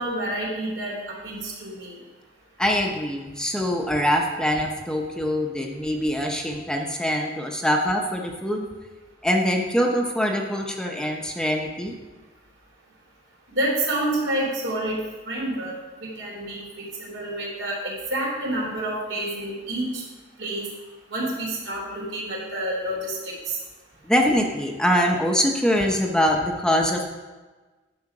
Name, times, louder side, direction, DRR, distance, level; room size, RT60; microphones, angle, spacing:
voice 1, 0.0-1.9 13.5-15.0 15.3-15.7 16.2-20.0 20.4-20.7 21.1-23.6, right 1 dB, 85° right, -3 dB, 3.5 m, -28 dB
voice 2, 2.6-8.7 9.2-11.9 24.0-27.0, equal, 5° left, 1 dB, 0.8 m, -23 dB
10.5 x 6.4 x 4.8 m, 1.3 s
head